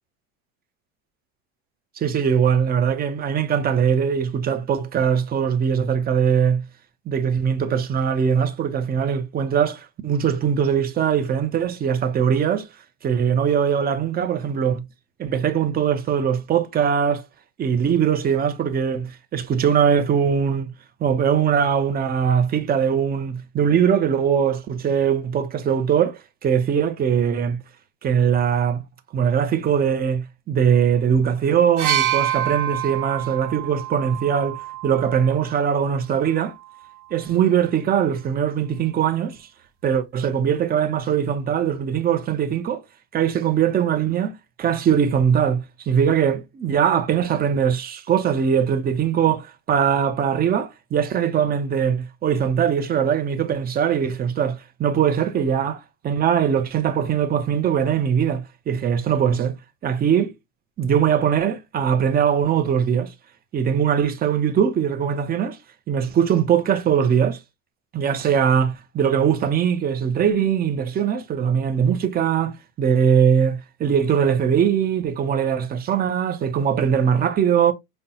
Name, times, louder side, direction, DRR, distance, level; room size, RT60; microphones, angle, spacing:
voice 1, 2.0-6.6 7.1-12.7 13.0-14.8 15.2-17.2 17.6-20.7 21.0-27.6 28.0-28.8 29.1-36.5 37.1-39.5 39.8-42.8 43.1-44.3 44.6-59.6 59.8-60.3 60.8-63.1 63.5-65.6 65.9-67.4 67.9-77.7, right 8 dB, 20° right, 0.5 m, -21 dB
sound 1, 31.8-35.6 36.6-36.8, right 11 dB, 85° right, 1.1 m, -27 dB
5.2 x 2.2 x 2.7 m
hypercardioid pair, 95°, 43 cm